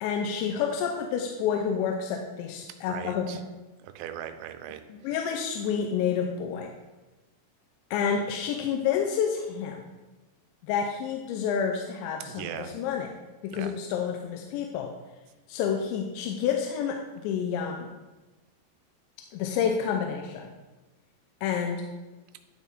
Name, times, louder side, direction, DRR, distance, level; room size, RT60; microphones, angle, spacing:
voice 1, 0.0-3.3 4.9-6.7 7.9-9.9 10.7-13.1 13.4-14.9 15.5-17.9 19.3-20.5 21.4-21.8, left 7 dB, 90° left, 3 dB, 2.9 m, -29 dB
voice 2, 2.9-3.4 3.8-4.8 12.3-12.7 13.5-13.7, right 10 dB, 85° right, 9 dB, 2.9 m, -39 dB
12.0 x 4.2 x 3.6 m, 1.1 s
omnidirectional pair, 5.1 m